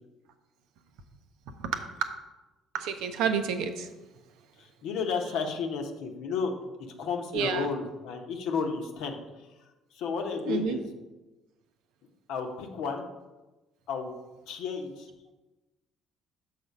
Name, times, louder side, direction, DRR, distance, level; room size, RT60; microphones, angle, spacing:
voice 1, 2.7-3.9 7.3-7.7 10.5-10.8, right 6 dB, 65° right, 0.6 m, -29 dB
voice 2, 4.8-6.5 6.8-9.2 9.9-10.8 12.3-13.0 13.9-14.1 14.5-15.1, left 5 dB, 65° left, 0.9 m, -32 dB
6.7 x 4.2 x 5.2 m
figure-of-eight pair, 50°, 0 cm